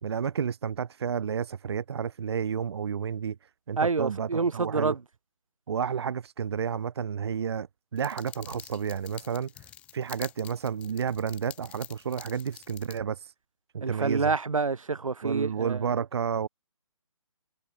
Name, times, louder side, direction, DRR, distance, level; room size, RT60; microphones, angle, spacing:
voice 1, 0.0-5.0 5.7-9.7 9.9-13.3 13.7-14.3 15.2-16.5, right 7 dB, 55° right, 0.9 m, -31 dB
voice 2, 3.8-5.0 13.8-15.9, right 4 dB, 90° right, 2.4 m, -28 dB
sound 1, 8.0-13.0, left 12 dB, 5° left, 0.6 m, -47 dB
hypercardioid pair, 160°, 17 cm